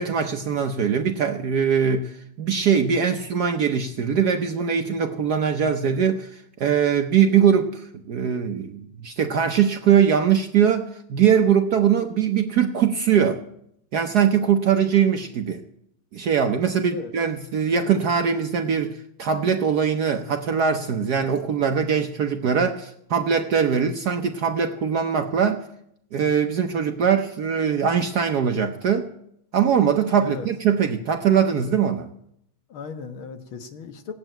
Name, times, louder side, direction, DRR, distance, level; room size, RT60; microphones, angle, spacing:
voice 1, 0.0-13.4 13.9-15.6 16.1-25.6 26.1-29.1 29.5-32.1, right 7 dB, 60° right, 6 dB, 1.1 m, -21 dB
voice 2, 32.7-34.1, left 6 dB, 70° left, 6 dB, 2.1 m, -36 dB
17.5 x 8.1 x 9.0 m, 0.74 s
omnidirectional pair, 2.4 m